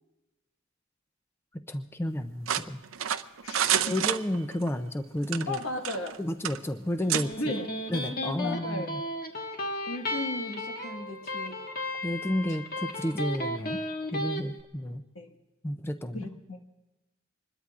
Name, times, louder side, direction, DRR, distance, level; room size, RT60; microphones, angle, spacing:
voice 1, 1.5-2.8 3.8-5.6 6.2-7.3 7.9-9.0 12.0-13.8 14.1-15.0 15.6-16.3, left 1 dB, 10° left, 7 dB, 0.5 m, -31 dB
sound 1, 2.5-4.7 5.2-6.2 6.4-6.6 7.1-7.3, right 10 dB, 80° right, 0.6 m, -28 dB
voice 2, 3.4-3.9 5.5-6.2 7.4-7.7 8.4-9.0 9.9-11.6 15.2-15.3 16.1-16.7, left 1 dB, 75° left, 3 dB, 1.7 m, -36 dB
Electric guitar, 7.0-14.4, left 1 dB, 45° left, 1.5 m, -34 dB
25.5 x 21.0 x 2.5 m, 1.0 s
head